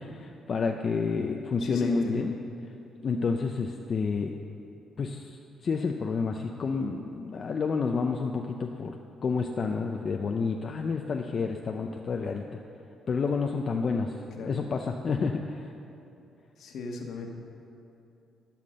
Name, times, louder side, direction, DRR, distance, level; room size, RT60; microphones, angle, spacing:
voice 1, 0.0-2.4 3.0-4.3 5.0-5.4 5.6-12.4 13.1-14.1 14.4-15.7, left 4 dB, 50° left, 3 dB, 0.6 m, -29 dB
voice 2, 1.6-2.2 14.4-14.6 16.6-17.3, left 3 dB, 70° left, 2 dB, 1.3 m, -36 dB
12.0 x 5.9 x 6.5 m, 2.9 s
cardioid pair, 90°, 0 cm